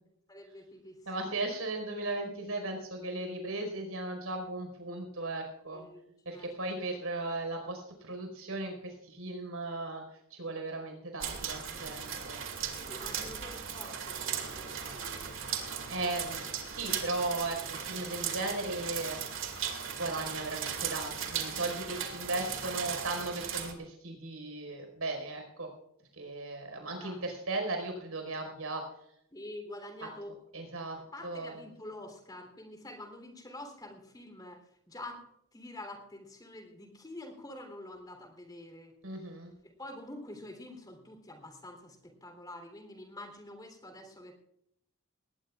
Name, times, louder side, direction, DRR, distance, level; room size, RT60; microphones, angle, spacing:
voice 1, 0.3-1.4 5.7-6.5 12.8-15.3 26.8-27.2 29.3-30.4 31.0-35.2 35.5-38.9 39.8-44.3, left 1 dB, 20° left, 4 dB, 3.4 m, -47 dB
voice 2, 1.1-5.9 6.2-10.0 10.3-12.4 15.9-19.2 20.0-25.7 26.2-28.8 30.5-31.0 31.2-31.6 39.0-39.5, right 2 dB, 80° right, 4 dB, 4.9 m, -36 dB
sound 1, 11.2-23.7, right 7 dB, 65° right, 2.3 m, -37 dB
20.0 x 18.5 x 2.5 m, 0.77 s
head